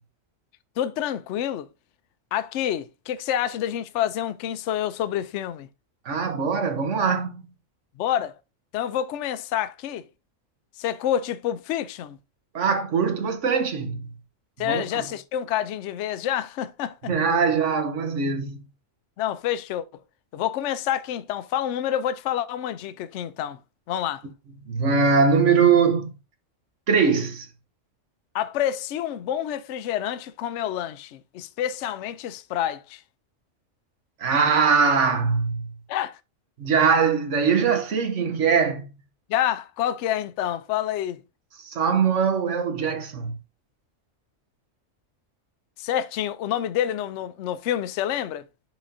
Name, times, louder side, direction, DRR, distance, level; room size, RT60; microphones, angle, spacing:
voice 1, 0.8-1.7 2.3-5.7 8.0-8.3 8.7-10.0 10.8-12.2 14.6-17.1 19.2-19.8 20.3-23.6 23.9-24.2 28.3-33.0 35.9-36.2 39.3-41.2 45.8-48.4, left 11 dB, 70° left, 0.8 m, -28 dB
voice 2, 6.0-7.4 12.5-14.1 14.6-15.0 17.1-18.6 24.6-26.1 26.9-27.5 34.2-35.7 36.6-38.9 41.6-43.3, right 5 dB, 65° right, 1.4 m, -22 dB
10.5 x 4.1 x 2.6 m
omnidirectional pair, 1.3 m